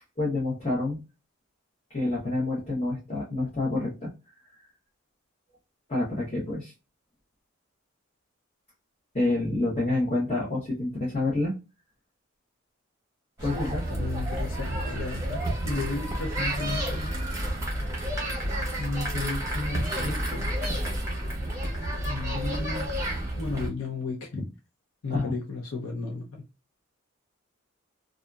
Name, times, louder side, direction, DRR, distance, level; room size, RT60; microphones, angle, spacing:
voice 1, 0.2-1.0 1.9-4.1 4.6-4.7 5.9-6.7 9.1-11.5 13.4-13.8 25.1-25.3, left 2 dB, 30° left, 1.0 m, -28 dB
voice 2, 13.4-17.1 18.8-20.5 22.1-22.9 23.4-24.5 25.0-26.4, left 3 dB, 85° left, 0.7 m, -34 dB
sound 1, 13.4-23.7, right 1 dB, 15° right, 0.8 m, -30 dB
2.7 x 2.4 x 2.2 m
head